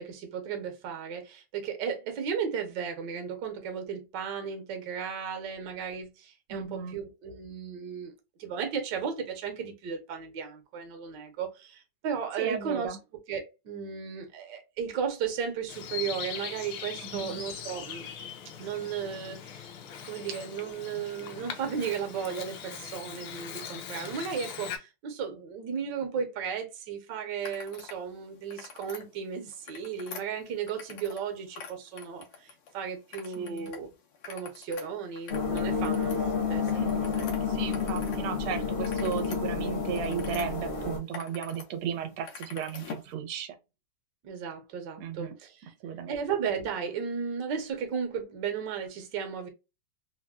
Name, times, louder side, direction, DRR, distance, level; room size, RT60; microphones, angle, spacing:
voice 1, 0.0-8.1 8.4-12.9 13.3-18.1 18.6-19.7 20.0-33.9 34.3-37.8 44.2-45.7 46.1-49.5, right 7 dB, 65° right, 1.3 m, -35 dB
voice 2, 6.5-7.0 12.4-13.0 17.0-17.4 33.4-33.7 36.7-37.1 37.5-43.5 45.0-45.3 45.8-46.1, right 7 dB, 90° right, 1.5 m, -35 dB
Bird vocalization bird call bird song, 15.7-24.8, left 8 dB, 70° left, 1.3 m, -41 dB
sound 1, 27.4-28.0 28.4-29.0 29.5-31.3 31.5-32.7 33.1-33.8 34.1-38.2 38.5-40.5 40.9-41.7 41.9-43.1, left 6 dB, 85° left, 1.7 m, -45 dB
sound 2, 35.3-41.0, left 5 dB, 45° left, 0.9 m, -30 dB
4.1 x 2.1 x 2.3 m
omnidirectional pair, 2.3 m